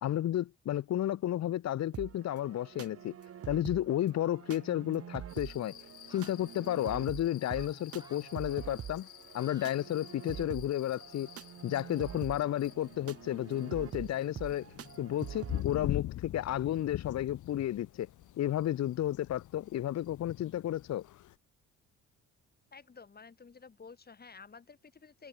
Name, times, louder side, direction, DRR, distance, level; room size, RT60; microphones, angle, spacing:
voice 1, 0.0-3.1 3.5-5.7 6.1-9.1 9.3-11.3 11.6-14.6 15.0-18.1 18.4-21.0, left 12 dB, 60° left, 0.9 m, -32 dB
sound 1, 1.9-15.6, right 9 dB, 50° right, 1.3 m, -45 dB
sound 2, 5.3-21.4, left 14 dB, 80° left, 1.9 m, -45 dB
sound 3, 6.1-6.4 7.5-7.7 8.0-8.3 9.2-9.7 10.0-10.8, right 2 dB, 15° right, 3.0 m, -56 dB
voice 2, 22.7-25.3, left 5 dB, 30° left, 3.4 m, -52 dB
cardioid pair, 90°, 30 cm